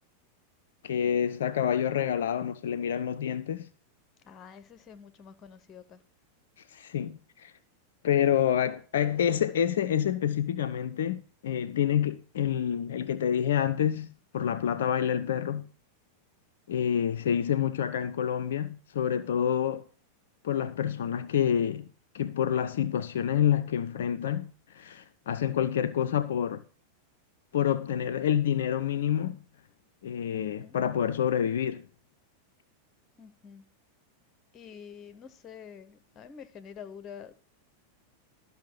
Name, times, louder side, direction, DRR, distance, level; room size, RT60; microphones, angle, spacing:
voice 1, 0.8-3.7 6.7-7.5 8.0-15.7 16.7-19.8 20.4-21.9 22.1-26.6 27.5-29.4 30.0-31.8, left 9 dB, 60° left, 0.4 m, -28 dB
voice 2, 4.2-6.0 30.3-30.8 33.2-33.6 34.5-37.3, left 7 dB, 25° left, 0.9 m, -47 dB
12.0 x 5.5 x 5.6 m
figure-of-eight pair, 90°, 0 cm